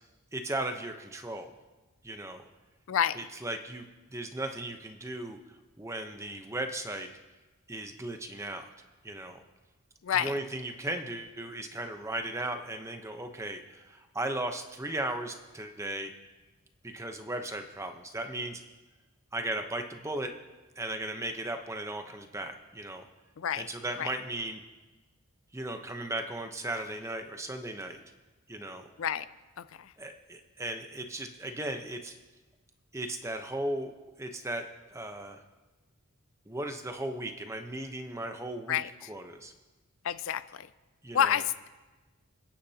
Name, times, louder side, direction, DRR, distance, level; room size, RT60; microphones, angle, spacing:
voice 1, 0.3-1.5 2.0-2.5 3.1-7.1 7.7-8.7 9.0-9.4 10.1-16.1 16.8-18.6 19.3-20.3 20.8-23.1 23.5-24.6 25.5-28.0 28.5-28.9 30.0-32.2 32.9-33.9 34.2-35.4 36.5-38.8 39.1-39.5 41.0-41.4, right 1 dB, 15° right, 5 dB, 0.9 m, -36 dB
voice 2, 2.9-3.2 10.0-10.3 23.4-23.6 24.0-24.1 29.0-29.3 38.7-38.9 40.0-40.7 41.1-41.7, left 9 dB, 65° left, 14 dB, 0.4 m, -28 dB
27.5 x 10.0 x 2.9 m, 1.2 s
head